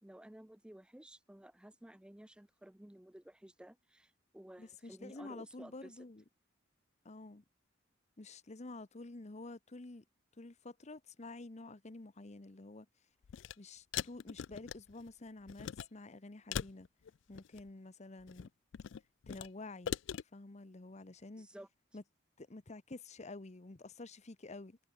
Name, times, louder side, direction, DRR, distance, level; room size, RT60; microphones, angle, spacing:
voice 1, 0.0-5.9 21.4-21.7, right 1 dB, 5° right, 0.4 m, -54 dB
voice 2, 4.6-6.2 7.0-7.4 8.2-10.0 10.3-12.9 13.6-16.9 17.3-18.5 19.3-20.0 20.2-21.5 21.9-22.0 22.4-24.8, left 2 dB, 35° left, 0.9 m, -49 dB
sound 1, 13.2-13.5 13.9-15.1 15.5-15.9 16.5-17.7 18.2-19.5 19.8-20.2, left 8 dB, 75° left, 0.4 m, -41 dB
head